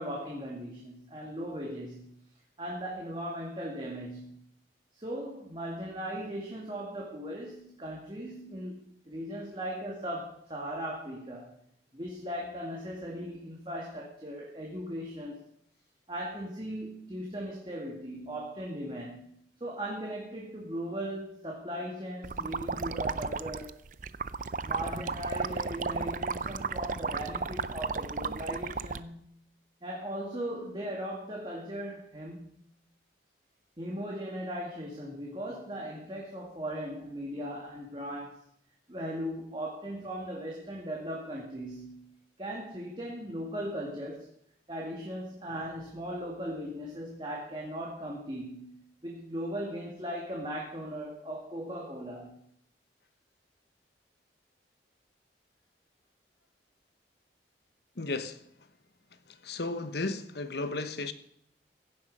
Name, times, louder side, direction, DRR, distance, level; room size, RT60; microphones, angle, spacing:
voice 1, 0.0-2.1 2.6-4.4 4.9-11.5 11.9-15.4 16.1-19.3 19.6-23.8 24.6-29.3 29.8-32.6 33.8-38.4 38.9-42.1 42.4-44.3 44.7-52.4, equal, 25° right, 2.3 m, -38 dB
sound 1, 22.2-29.0, right 4 dB, 45° right, 0.5 m, -34 dB
voice 2, 58.0-58.4 59.3-61.1, left 3 dB, 65° left, 1.1 m, -34 dB
16.0 x 10.5 x 5.4 m
head